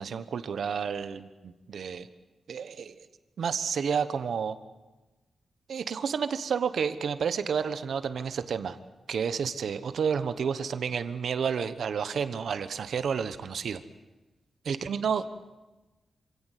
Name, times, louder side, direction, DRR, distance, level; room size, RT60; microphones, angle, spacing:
voice 1, 0.0-2.1 2.5-2.9 3.4-4.6 5.7-8.8 9.1-13.8 14.6-15.3, right 6 dB, 70° right, 12 dB, 1.1 m, -30 dB
27.0 x 17.0 x 8.2 m, 1.1 s
wide cardioid pair, 155°, 0 cm